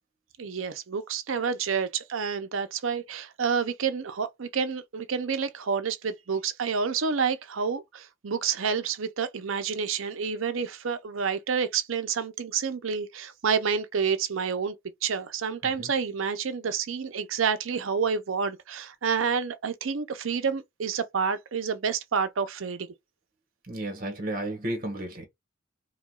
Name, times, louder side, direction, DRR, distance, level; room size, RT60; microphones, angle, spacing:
voice 1, 0.4-14.8 15.0-22.9, right 6 dB, 75° right, 0.6 m, -29 dB
voice 2, 23.7-25.3, right 1 dB, 45° right, 1.4 m, -33 dB
4.8 x 2.3 x 2.3 m
head